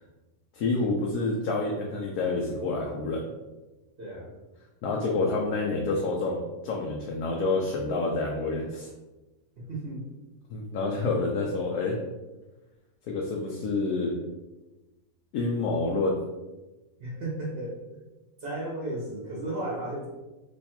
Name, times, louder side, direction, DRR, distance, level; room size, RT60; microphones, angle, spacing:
voice 1, 0.5-3.3 4.8-8.9 10.5-12.0 13.1-14.1 15.3-16.2, left 3 dB, 75° left, -1 dB, 1.0 m, -28 dB
voice 2, 4.0-4.3 9.6-10.0 17.0-17.8 18.4-20.1, right 1 dB, 45° right, -5 dB, 0.9 m, -34 dB
3.1 x 2.3 x 4.2 m, 1.1 s
omnidirectional pair, 1.6 m